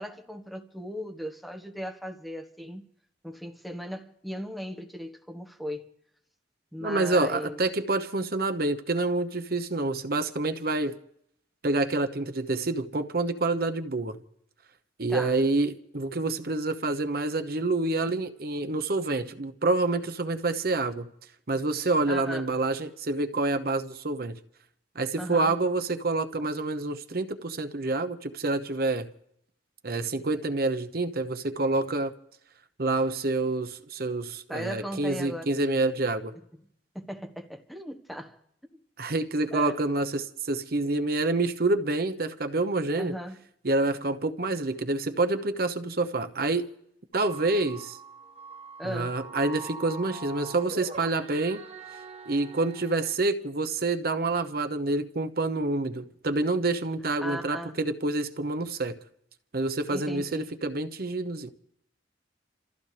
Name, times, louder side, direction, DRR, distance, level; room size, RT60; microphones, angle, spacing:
voice 1, 0.0-2.9 3.2-5.9 6.7-7.6 15.1-15.4 22.1-22.4 25.2-25.5 34.5-35.6 36.9-38.4 38.7-38.8 39.5-39.8 43.0-43.4 48.8-49.2 57.2-57.8 59.9-60.5, equal, ahead, 1.4 m, -37 dB
voice 2, 6.8-11.0 11.6-14.2 15.0-21.1 21.5-24.4 24.9-29.1 29.8-32.2 32.8-36.3 39.0-43.1 43.6-46.7 47.1-48.0 48.8-51.6 52.3-59.0 59.5-61.5, right 2 dB, 55° right, 0.9 m, -27 dB
sound 1, 47.1-53.1, right 4 dB, 35° right, 1.2 m, -43 dB
28.5 x 14.5 x 3.4 m
head